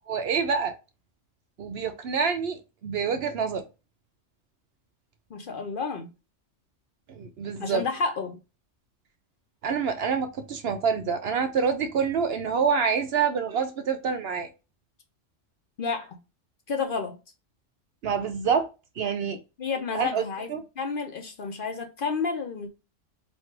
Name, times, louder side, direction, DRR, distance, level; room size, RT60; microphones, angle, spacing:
voice 1, 0.1-0.7 1.6-3.6 7.1-7.8 9.6-14.5 18.0-18.7 19.0-19.4 19.9-20.2 20.5-20.6, right 6 dB, 65° right, 0.7 m, -26 dB
voice 2, 5.3-6.1 7.6-8.4 15.8-16.2 16.7-17.2 19.6-20.5 20.8-22.7, left 5 dB, 50° left, 0.8 m, -30 dB
3.2 x 2.4 x 4.4 m
omnidirectional pair, 1.3 m